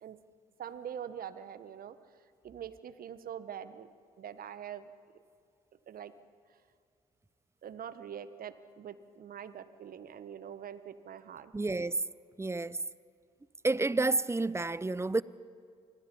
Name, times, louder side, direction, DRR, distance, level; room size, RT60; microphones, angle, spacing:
voice 1, 0.6-1.9 2.4-3.9 4.2-4.9 5.9-6.1 7.6-11.5, right 9 dB, 55° right, 1.4 m, -44 dB
voice 2, 11.5-12.0 12.4-12.8 13.6-15.2, right 2 dB, 15° right, 0.8 m, -30 dB
30.0 x 25.0 x 5.5 m
hypercardioid pair, 45°, 18 cm